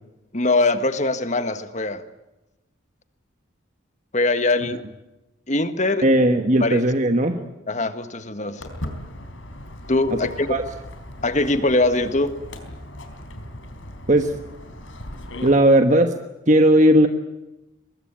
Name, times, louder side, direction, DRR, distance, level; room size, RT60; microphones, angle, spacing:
voice 1, 0.3-2.0 4.1-4.8 5.5-6.1 6.6-6.8 7.7-8.6 9.9-10.5 11.2-12.3, left 2 dB, 35° left, 10 dB, 1.5 m, -22 dB
voice 2, 6.0-7.4 10.1-10.2 10.5-10.6 14.1-14.3 15.4-16.1 16.5-17.1, right 1 dB, 35° right, 6 dB, 1.3 m, -16 dB
Walk footsteps, 8.6-15.5, left 1 dB, 70° left, 4.0 m, -38 dB
24.0 x 21.5 x 8.8 m, 0.97 s
head